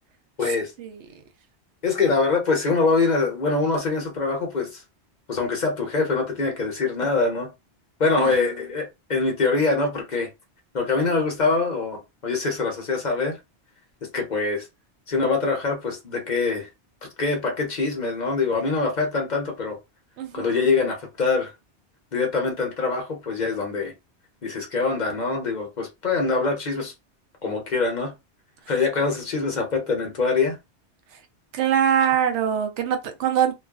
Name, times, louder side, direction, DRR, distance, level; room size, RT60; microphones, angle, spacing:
voice 1, 0.4-0.7 1.8-4.8 5.3-7.5 8.0-10.3 10.7-13.4 14.0-14.7 15.1-16.7 17.2-19.8 20.3-21.5 22.1-23.9 24.4-26.9 27.4-28.1 28.7-30.6, left 4 dB, 45° left, 0.7 m, -24 dB
voice 2, 20.2-20.6 31.5-33.5, right 9 dB, 90° right, 0.9 m, -23 dB
2.4 x 2.3 x 2.3 m
omnidirectional pair, 1.1 m